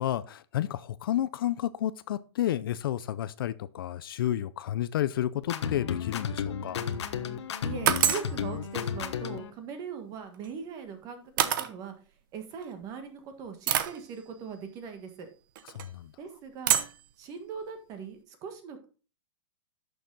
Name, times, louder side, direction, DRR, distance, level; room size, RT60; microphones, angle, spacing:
voice 1, 0.0-6.8 15.6-16.1, left 12 dB, 45° left, 0.5 m, -31 dB
sound 1, 5.4-9.5, left 7 dB, 65° left, 1.3 m, -33 dB
sound 2, 6.7-7.0 7.9-8.3 10.3-10.5 11.4-11.7 12.6-12.7 13.7-14.0 15.6-15.9 16.7-17.0, right 10 dB, 45° right, 0.9 m, -26 dB
voice 2, 7.6-11.9 12.3-15.3 16.2-16.8 17.2-18.9, right 6 dB, 20° right, 1.5 m, -40 dB
11.5 x 6.8 x 3.9 m
hypercardioid pair, 165°, 16 cm